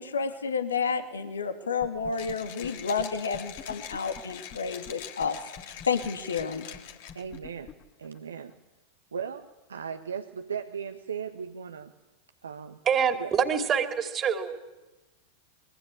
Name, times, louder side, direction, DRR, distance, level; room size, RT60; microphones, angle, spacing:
voice 1, 0.0-5.4 5.8-6.7, left 5 dB, 70° left, 6 dB, 2.5 m, -30 dB
sound 1, 1.8-2.3 2.6-2.7 3.0-3.1 3.3-4.9 5.2-5.3 5.6-8.5, left 8 dB, 30° left, 2.7 m, -45 dB
Mechanisms, 2.1-7.4, left 10 dB, 55° left, 2.9 m, -44 dB
voice 2, 7.1-7.7 8.0-8.5 9.1-11.9 12.4-12.8 13.2-13.3, right 7 dB, 70° right, 6 dB, 1.4 m, -37 dB
voice 3, 12.9-14.6, right 7 dB, 25° right, 5 dB, 2.9 m, -26 dB
25.5 x 23.5 x 8.6 m, 1.1 s
figure-of-eight pair, 90°, 0 cm